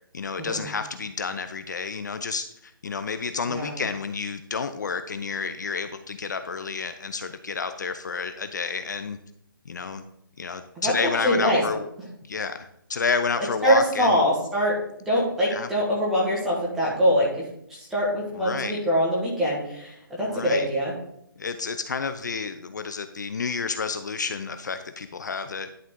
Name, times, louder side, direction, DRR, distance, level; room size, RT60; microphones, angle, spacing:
voice 1, 0.1-9.2 9.7-10.0 10.4-11.9 12.2-14.2 15.5-15.7 18.3-18.8 20.3-20.7 21.4-25.7, left 5 dB, 55° left, 9 dB, 0.5 m, -30 dB
voice 2, 11.2-11.6 13.6-14.8 15.0-17.4 17.7-20.9, equal, 5° right, -6 dB, 1.3 m, -23 dB
11.0 x 3.8 x 3.7 m, 0.73 s
hypercardioid pair, 170°, 12 cm